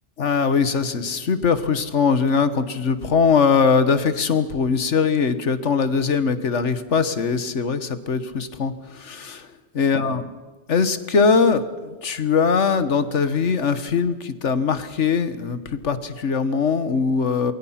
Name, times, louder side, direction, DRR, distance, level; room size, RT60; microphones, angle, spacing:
voice 1, 0.2-9.5 9.7-10.2 10.7-17.5, left 5 dB, 90° left, 12 dB, 1.7 m, -21 dB
28.0 x 22.5 x 5.9 m, 1.3 s
omnidirectional pair, 1.2 m